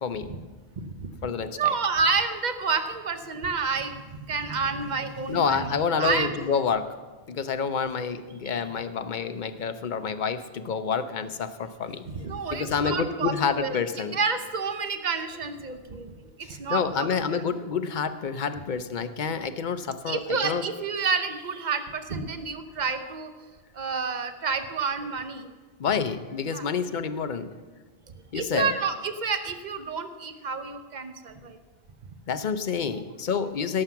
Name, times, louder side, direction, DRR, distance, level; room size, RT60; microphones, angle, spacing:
voice 1, 0.0-0.3 1.2-1.7 5.3-6.9 7.3-12.0 12.5-14.2 16.4-20.7 25.8-27.5 28.3-28.7 32.3-33.8, left 6 dB, 50° left, 10 dB, 0.9 m, -28 dB
voice 2, 0.8-1.1 1.5-4.0 4.3-6.4 12.1-13.3 13.6-13.8 14.1-17.4 20.1-23.3 23.7-25.5 26.5-26.6 28.3-31.6, right 5 dB, 45° right, 8 dB, 1.0 m, -29 dB
17.5 x 7.8 x 5.8 m, 1.4 s
omnidirectional pair, 1.0 m